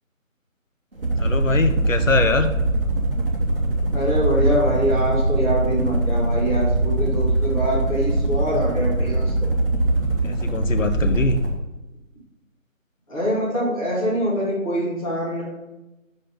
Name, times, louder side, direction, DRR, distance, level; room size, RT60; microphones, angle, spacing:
sound 1, 0.9-11.6, right 2 dB, 40° right, 1.3 m, -22 dB
voice 1, 1.2-2.5 10.2-11.4, left 3 dB, 70° left, 7 dB, 0.9 m, -23 dB
voice 2, 3.9-9.5 13.1-15.4, equal, 25° left, -9 dB, 2.7 m, -24 dB
5.4 x 5.3 x 5.5 m, 1.0 s
figure-of-eight pair, 160°, 40 cm